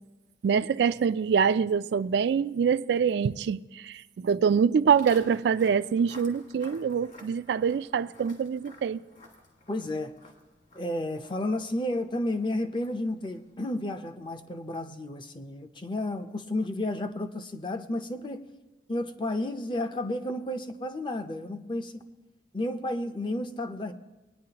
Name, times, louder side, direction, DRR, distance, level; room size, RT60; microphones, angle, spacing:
voice 1, 0.4-9.0, right 6 dB, 75° right, 0.3 m, -25 dB
Walk footsteps, 4.9-14.1, left 2 dB, 45° left, 1.7 m, -53 dB
voice 2, 9.7-10.1 10.7-18.4 18.9-22.0 22.5-23.9, left 1 dB, 25° left, 0.6 m, -32 dB
21.0 x 9.7 x 2.9 m
head